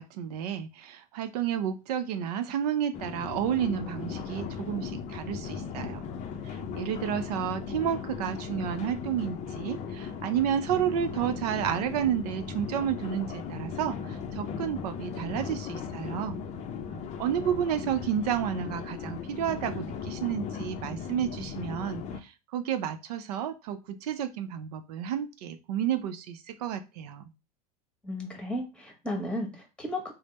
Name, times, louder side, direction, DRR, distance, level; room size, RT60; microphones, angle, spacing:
voice 1, 0.0-6.0 6.4-16.4 17.2-27.2, right 9 dB, 75° right, 9 dB, 0.5 m, -31 dB
sound 1, 2.9-22.2, left 6 dB, 35° left, 0.5 m, -37 dB
voice 2, 28.0-30.1, left 1 dB, 5° left, 2 dB, 1.3 m, -34 dB
3.3 x 2.0 x 4.1 m, 0.28 s
supercardioid pair, 110°, 20 cm